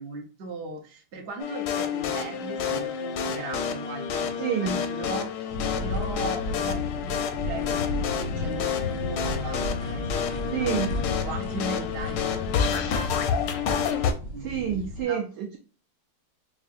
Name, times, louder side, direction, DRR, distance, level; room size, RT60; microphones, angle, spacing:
voice 1, 0.0-13.9 14.3-15.2, right 3 dB, 55° right, 1 dB, 0.8 m, -38 dB
sound 1, 1.4-14.1, left 7 dB, 75° left, 1.1 m, -29 dB
voice 2, 4.4-4.8 10.5-10.9 14.4-15.6, right 8 dB, 75° right, 2 dB, 1.0 m, -28 dB
sound 2, 5.5-15.0, left 2 dB, 45° left, 0.8 m, -34 dB
sound 3, 5.6-13.4, left 6 dB, 90° left, 1.5 m, -44 dB
4.5 x 2.5 x 2.4 m, 0.35 s
omnidirectional pair, 2.2 m